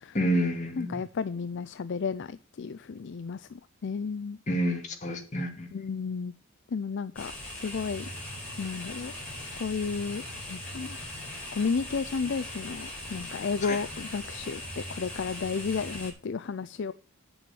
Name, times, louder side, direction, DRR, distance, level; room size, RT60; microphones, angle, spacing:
voice 1, 0.1-1.0 4.5-5.7 13.6-13.8, equal, 35° left, 2 dB, 2.6 m, -29 dB
voice 2, 0.8-3.5 3.8-4.4 5.7-6.3 6.7-7.3 7.6-8.1 8.6-9.1 9.6-10.2 10.5-11.0 11.5-16.9, left 5 dB, 55° left, 14 dB, 0.4 m, -32 dB
sound 1, 7.1-16.1, left 1 dB, 5° left, 4.7 m, -40 dB
9.3 x 7.0 x 6.9 m, 0.37 s
head